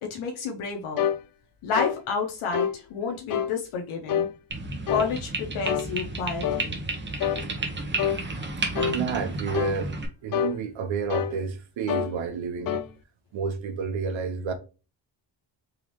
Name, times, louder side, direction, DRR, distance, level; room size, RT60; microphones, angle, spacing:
voice 1, 0.0-1.1 1.6-4.3 4.9-6.8, left 5 dB, 85° left, 0.9 m, -30 dB
sound 1, 1.0-1.2 1.7-2.0 2.5-2.8 3.3-3.5 4.1-4.3 4.9-5.1 5.6-5.9 6.4-6.7 7.2-7.4 8.0-8.2 8.7-9.0 9.5-9.8 10.3-10.6 11.1-11.4 11.9-12.1 12.7-12.9, left 9 dB, 45° left, 0.5 m, -26 dB
sound 2, 4.5-10.1, right 2 dB, 25° right, 1.0 m, -32 dB
voice 2, 8.7-9.9 10.2-12.8 13.3-14.5, right 6 dB, 70° right, 0.9 m, -30 dB
3.7 x 3.1 x 2.9 m
cardioid pair, 95°, 48 cm